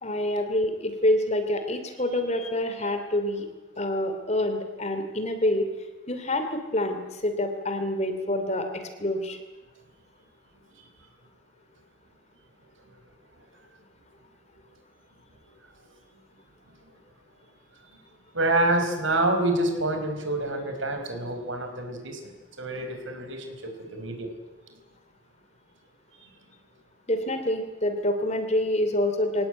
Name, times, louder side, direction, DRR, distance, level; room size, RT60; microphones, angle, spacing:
voice 1, 0.0-3.5 3.8-5.7 6.1-9.4 27.1-29.5, left 1 dB, 35° left, 7 dB, 2.9 m, -27 dB
voice 2, 18.3-24.3 26.2-26.3, right 1 dB, 70° right, 6 dB, 4.9 m, -28 dB
24.0 x 18.0 x 9.1 m, 1.2 s
head